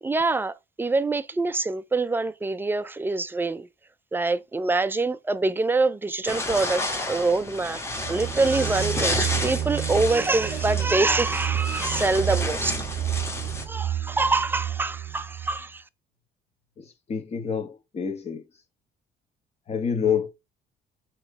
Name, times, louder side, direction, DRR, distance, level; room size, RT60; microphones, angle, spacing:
voice 1, 0.0-3.7 4.1-12.8 13.7-15.8, right 3 dB, 10° right, 0.5 m, -25 dB
sound 1, 6.3-13.6, left 2 dB, 15° left, 1.7 m, -31 dB
sound 2, 7.9-15.6, right 11 dB, 55° right, 0.6 m, -30 dB
voice 2, 16.8-18.4 19.7-20.3, left 7 dB, 35° left, 1.5 m, -27 dB
6.2 x 3.1 x 5.0 m
cardioid pair, 130°, 19 cm